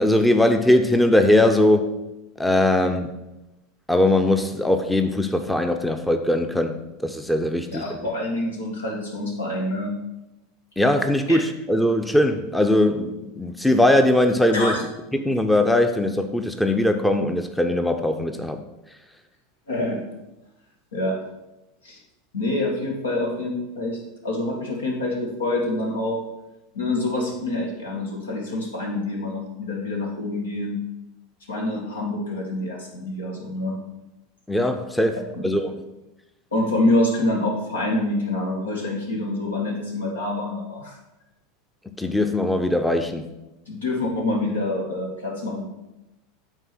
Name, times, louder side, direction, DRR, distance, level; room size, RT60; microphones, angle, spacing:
voice 1, 0.0-1.9 2.4-3.1 3.9-8.1 10.8-14.8 15.1-18.6 34.5-35.8 42.0-43.3, left 1 dB, 5° left, 7 dB, 0.6 m, -20 dB
voice 2, 7.6-9.9 11.3-11.4 14.5-14.8 19.7-20.0 20.9-21.2 21.8-22.0 22.3-26.2 26.7-30.8 31.5-33.8 35.4-35.5 36.5-41.0 43.7-45.7, left 2 dB, 85° left, 0 dB, 1.8 m, -26 dB
9.0 x 3.7 x 6.0 m, 0.97 s
hypercardioid pair, 85°, 0 cm